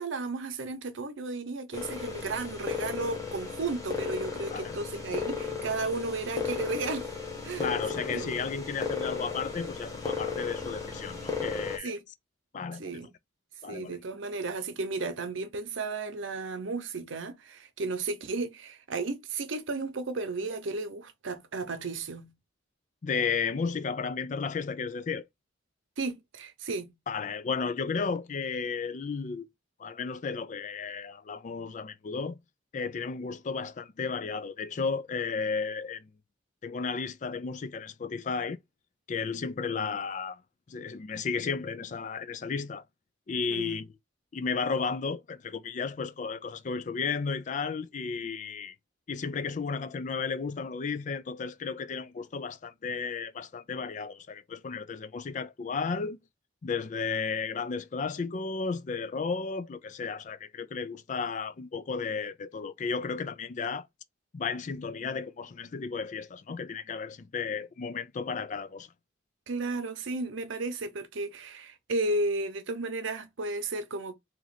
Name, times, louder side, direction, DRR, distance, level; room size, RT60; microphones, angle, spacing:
voice 1, 0.0-7.1 7.4-7.7 8.1-8.4 11.8-12.0 12.8-13.1 13.7-22.3 26.0-26.9 43.5-43.8 69.5-74.1, right 3 dB, 75° right, 0.7 m, -34 dB
sound 1, 1.7-11.8, left 5 dB, 15° left, 0.9 m, -35 dB
voice 2, 7.6-11.9 12.5-12.8 13.6-14.0 23.0-25.2 27.1-29.5 29.8-32.4 32.7-36.1 36.6-38.6 39.1-40.4 40.7-42.8 43.3-43.9 44.3-48.8 49.1-56.2 56.6-63.9 64.3-68.9, left 5 dB, 40° left, 0.4 m, -33 dB
3.0 x 2.5 x 4.0 m
head